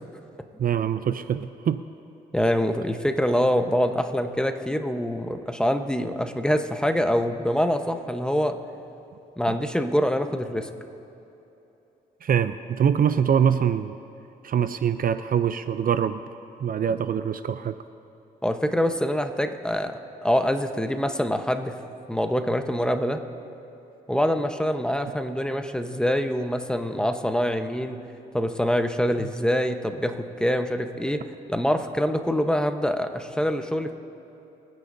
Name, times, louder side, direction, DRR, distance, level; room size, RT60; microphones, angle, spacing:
voice 1, 0.6-1.8 9.5-9.6 12.2-14.0 14.4-16.2 16.6-17.8, right 8 dB, 50° right, 12 dB, 0.5 m, -24 dB
voice 2, 2.3-8.6 9.4-10.7 18.4-19.9 20.2-21.8 22.1-23.2 24.1-28.0 28.3-31.2 31.5-34.0, equal, 5° left, 6 dB, 1.0 m, -25 dB
24.0 x 9.6 x 2.7 m, 3.0 s
supercardioid pair, 60°, 18 cm